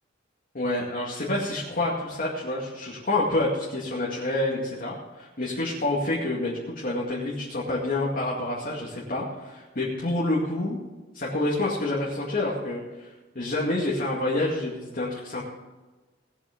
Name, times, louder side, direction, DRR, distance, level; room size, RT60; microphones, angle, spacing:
voice 1, 0.5-10.8 11.1-13.1 13.4-15.4, left 2 dB, 50° left, -4 dB, 2.2 m, -28 dB
19.0 x 7.0 x 5.3 m, 1.2 s
head